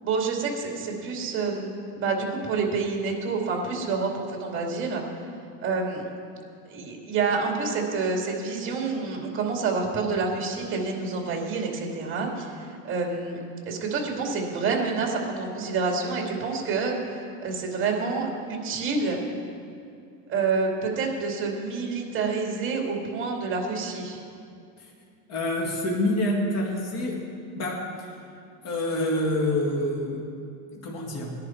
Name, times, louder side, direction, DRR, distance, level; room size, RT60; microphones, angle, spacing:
voice 1, 0.0-5.0 5.6-6.1 6.7-19.2 20.3-24.2, right 4 dB, 30° right, 0 dB, 2.7 m, -28 dB
voice 2, 25.3-27.2 27.5-27.9 28.6-30.2 30.7-31.3, left 1 dB, 40° left, -2 dB, 2.5 m, -27 dB
18.5 x 10.5 x 4.7 m, 2.4 s
supercardioid pair, 140°, 40 cm